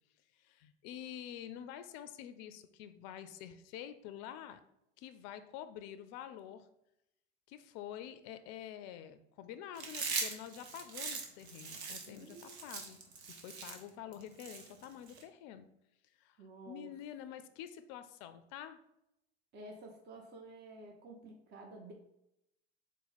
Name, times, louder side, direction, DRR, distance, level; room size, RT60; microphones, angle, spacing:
voice 1, 0.4-4.6 5.0-6.7 7.5-13.0 13.3-15.7 16.2-16.4 16.7-18.8, left 10 dB, 50° left, 12 dB, 0.4 m, -48 dB
Chewing mastication, 9.8-15.2, right 4 dB, 75° right, 0.9 m, -41 dB
voice 2, 12.1-12.7 16.4-16.9 19.5-21.9, right 2 dB, 30° right, 1 dB, 0.7 m, -51 dB
4.1 x 2.1 x 4.1 m, 0.83 s
hypercardioid pair, 75°, 33 cm